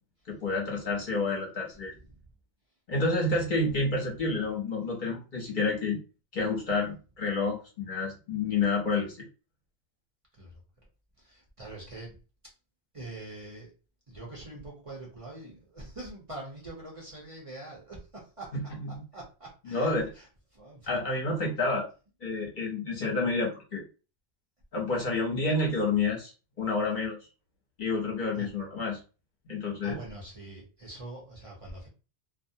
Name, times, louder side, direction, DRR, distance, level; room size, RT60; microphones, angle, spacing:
voice 1, 0.3-1.9 2.9-6.0 6.3-9.2 18.5-18.9 19.7-20.1 20.9-21.9 22.2-23.8 24.7-26.3 26.6-27.2 27.8-29.0 29.5-30.0, left 3 dB, 50° left, -2 dB, 0.9 m, -29 dB
voice 2, 11.2-12.2 12.9-13.7 14.1-18.5 18.9-20.3 20.5-20.9 28.3-28.5 29.8-31.9, right 2 dB, 35° right, -3 dB, 0.7 m, -44 dB
2.4 x 2.0 x 2.6 m, 0.33 s
omnidirectional pair, 1.1 m